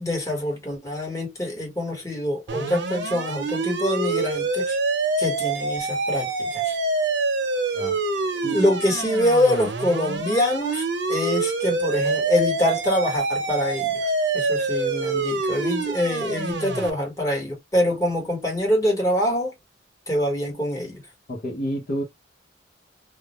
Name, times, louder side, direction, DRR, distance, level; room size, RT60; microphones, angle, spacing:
voice 1, 0.0-4.8 5.2-6.8 8.5-19.5 20.1-21.0, left 1 dB, 20° left, 1.2 m, -25 dB
sound 1, 2.5-16.9, right 3 dB, 75° right, 0.7 m, -26 dB
voice 2, 21.3-22.0, equal, 50° left, 0.7 m, -29 dB
2.4 x 2.0 x 3.0 m
head